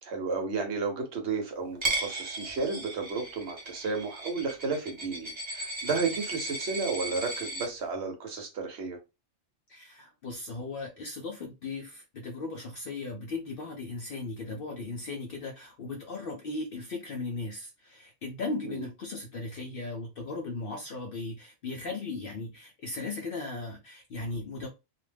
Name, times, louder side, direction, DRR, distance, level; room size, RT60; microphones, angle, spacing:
voice 1, 0.0-9.0 18.7-18.8, right 4 dB, 60° right, 0.9 m, -32 dB
Coin (dropping), 1.8-7.7, right 2 dB, 35° right, 0.5 m, -36 dB
voice 2, 9.7-24.7, left 3 dB, 60° left, 0.6 m, -37 dB
2.4 x 2.1 x 3.2 m
omnidirectional pair, 1.3 m